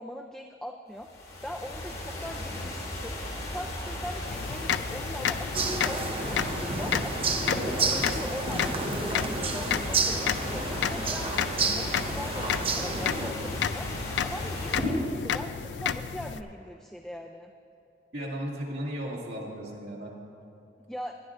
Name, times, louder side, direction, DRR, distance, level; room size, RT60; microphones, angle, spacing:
voice 1, 0.0-10.6 10.9-17.5 20.9-21.1, equal, 5° left, 3 dB, 0.3 m, -41 dB
sound 1, 1.0-14.8, left 1 dB, 60° left, 2.6 m, -36 dB
sound 2, 4.3-16.4, left 8 dB, 75° left, 0.4 m, -32 dB
sound 3, 5.5-13.3, right 4 dB, 30° right, 0.7 m, -31 dB
voice 2, 18.1-20.1, equal, 65° right, -4 dB, 2.2 m, -35 dB
20.0 x 10.5 x 2.5 m, 2.8 s
head